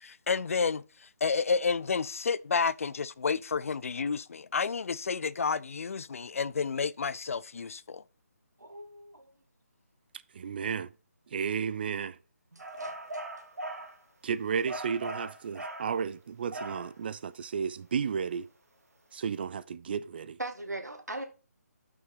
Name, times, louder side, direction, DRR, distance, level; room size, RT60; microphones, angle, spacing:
voice 1, 0.0-8.0, left 5 dB, 55° left, 0.5 m, -30 dB
voice 2, 8.6-9.3 12.5-12.9 20.4-21.2, right 2 dB, 80° right, 2.0 m, -39 dB
voice 3, 10.3-10.9 11.3-12.2 14.2-18.5 19.1-20.4, right 6 dB, 35° right, 0.5 m, -33 dB
sound 1, 12.6-14.0 14.7-15.9 16.5-16.9, right 1 dB, 65° right, 2.1 m, -39 dB
6.1 x 5.9 x 5.5 m
figure-of-eight pair, 150°, 9 cm